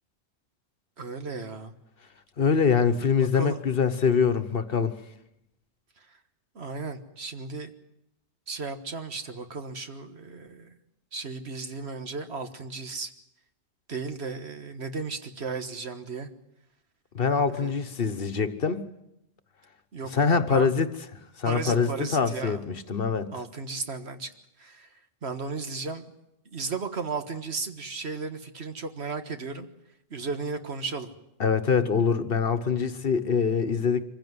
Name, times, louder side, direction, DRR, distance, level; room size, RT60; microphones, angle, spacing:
voice 1, 1.0-1.7 3.3-3.6 6.6-7.7 8.5-10.7 11.1-13.1 13.9-16.3 17.5-17.7 19.9-20.1 20.5-20.7 21.4-22.6 23.3-24.3 24.6-24.9 25.2-26.1 26.5-29.7 30.1-31.1, right 4 dB, 65° right, 8 dB, 1.8 m, -35 dB
voice 2, 2.4-5.0 17.1-18.8 20.1-20.9 21.4-23.3 31.4-34.0, left 6 dB, 55° left, 11 dB, 1.3 m, -24 dB
24.5 x 15.5 x 9.5 m, 0.84 s
omnidirectional pair, 1.2 m